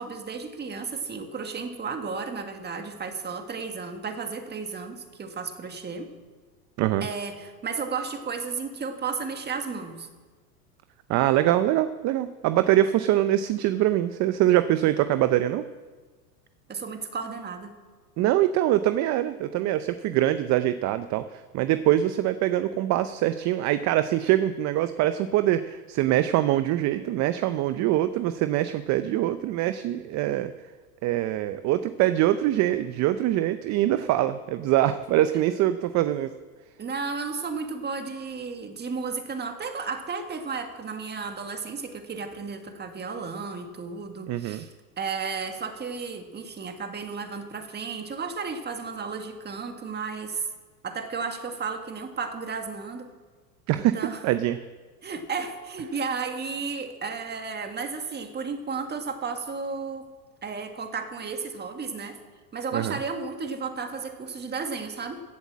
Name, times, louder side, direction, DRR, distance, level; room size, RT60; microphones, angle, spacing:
voice 1, 0.0-6.1 7.0-10.1 16.7-17.7 36.8-50.5 50.8-53.1 53.7-54.2 55.0-60.1 60.4-62.2 62.5-65.2, right 5 dB, 20° right, 6 dB, 1.8 m, -33 dB
voice 2, 11.1-15.6 18.2-30.5 31.0-36.3 44.3-44.7 53.7-54.0 54.2-54.6 62.7-63.0, right 13 dB, 35° right, 12 dB, 0.6 m, -24 dB
16.0 x 8.0 x 7.5 m, 1.4 s
hypercardioid pair, 110°, 47 cm